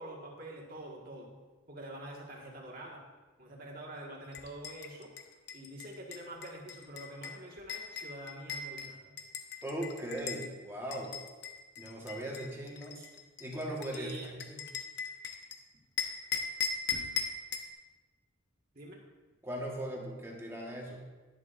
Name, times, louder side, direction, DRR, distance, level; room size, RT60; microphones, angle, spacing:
voice 1, 0.0-1.4 1.7-3.0 3.4-5.1 5.5-9.1 12.9-13.1 13.9-14.3 18.7-19.0, right 1 dB, 45° right, -2 dB, 1.7 m, -46 dB
sound 1, 4.3-10.5 10.9-15.6 16.0-17.7, left 6 dB, 55° left, 0.8 m, -39 dB
voice 2, 9.6-11.2 11.8-13.0 13.4-14.6 19.4-21.0, right 1 dB, 10° right, -2 dB, 1.4 m, -39 dB
11.0 x 11.0 x 2.6 m, 1.3 s
head